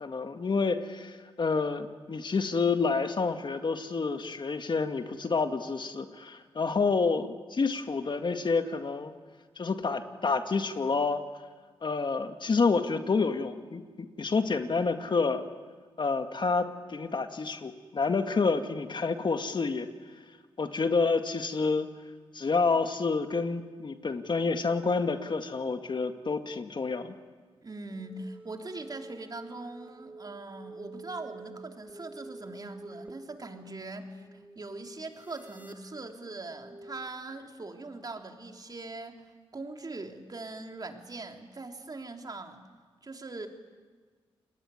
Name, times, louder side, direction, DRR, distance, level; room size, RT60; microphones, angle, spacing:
voice 1, 0.0-9.1 9.6-11.2 11.8-15.4 16.0-19.9 20.6-21.9 22.3-27.1, left 4 dB, 50° left, 7 dB, 2.0 m, -28 dB
voice 2, 27.6-39.2 39.5-42.6 43.0-43.5, right 3 dB, 40° right, 4 dB, 3.4 m, -41 dB
sound 1, 27.9-37.1, right 2 dB, 15° right, 2.2 m, -48 dB
29.0 x 20.0 x 9.9 m, 1.5 s
cardioid pair, 60°, 10 cm